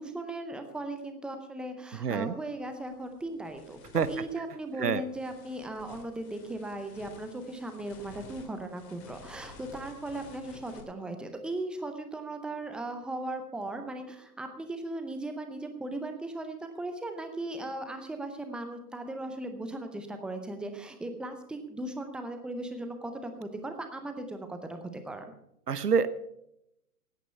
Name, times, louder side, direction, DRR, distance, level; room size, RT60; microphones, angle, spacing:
voice 1, 0.0-25.3, right 2 dB, ahead, 6 dB, 0.5 m, -37 dB
sound 1, 2.0-2.1 2.6-10.8, left 3 dB, 25° left, 2.8 m, -52 dB
voice 2, 2.0-2.3 3.9-4.1 4.8-5.0 25.7-26.1, right 6 dB, 85° right, 14 dB, 1.0 m, -26 dB
17.0 x 9.2 x 5.6 m, 0.80 s
figure-of-eight pair, 125°, 46 cm